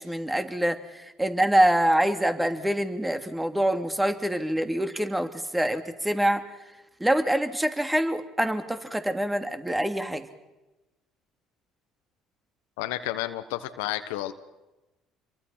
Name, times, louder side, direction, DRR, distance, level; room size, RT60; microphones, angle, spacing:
voice 1, 0.0-6.4 7.0-10.2, right 1 dB, 10° right, 8 dB, 2.8 m, -25 dB
voice 2, 12.8-14.3, left 14 dB, 80° left, 9 dB, 1.2 m, -31 dB
28.0 x 23.0 x 5.8 m, 1.0 s
hypercardioid pair, 65°, 0 cm